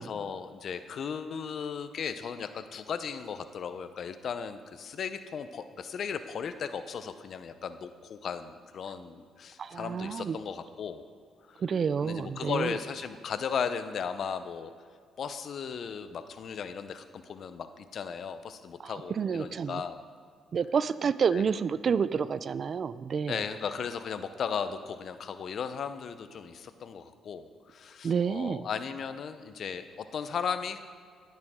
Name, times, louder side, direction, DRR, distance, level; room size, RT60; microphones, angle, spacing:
voice 1, 0.0-11.0 11.5-11.6 12.0-14.7 15.2-20.0 21.3-21.4 23.3-30.8, left 6 dB, 60° left, 11 dB, 0.7 m, -36 dB
voice 2, 9.6-10.4 11.6-12.7 18.8-19.8 20.5-23.4 28.0-28.7, right 6 dB, 50° right, 16 dB, 0.4 m, -29 dB
12.0 x 10.5 x 3.7 m, 2.1 s
cardioid pair, 90°, 0 cm